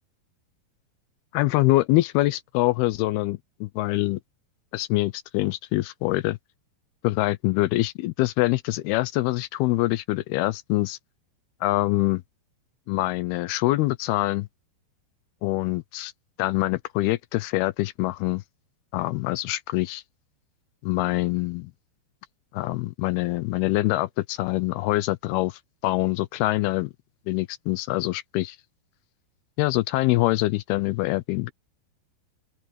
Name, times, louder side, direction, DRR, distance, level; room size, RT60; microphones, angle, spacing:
voice 1, 1.3-4.2 4.7-6.4 7.0-11.0 11.6-12.2 12.9-14.5 15.4-16.1 16.4-18.4 18.9-20.0 20.8-21.7 22.5-26.9 27.3-28.6 29.6-31.5, left 18 dB, 80° left, 2.3 m, -24 dB
open air
omnidirectional pair, 5.0 m